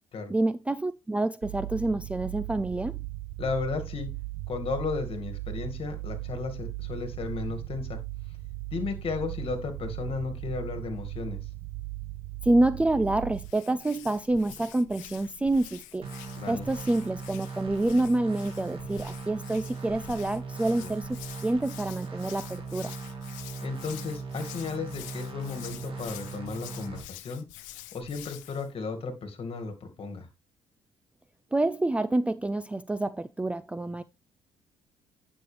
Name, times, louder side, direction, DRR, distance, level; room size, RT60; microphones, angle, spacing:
voice 1, 0.3-3.0 12.4-16.1 16.5-22.9 31.5-34.0, right 2 dB, 10° right, 0.4 m, -27 dB
sound 1, 1.4-13.5, right 18 dB, 65° right, 0.5 m, -38 dB
voice 2, 3.4-4.1 4.5-8.0 8.7-11.4 16.4-16.7 20.8-20.9 23.6-27.4 27.9-30.3, left 4 dB, 45° left, 2.0 m, -34 dB
Hands, 13.3-28.7, left 14 dB, 85° left, 0.7 m, -47 dB
sound 2, 16.0-27.0, right 4 dB, 45° right, 2.5 m, -39 dB
9.4 x 6.1 x 3.3 m
supercardioid pair, 75°, 13 cm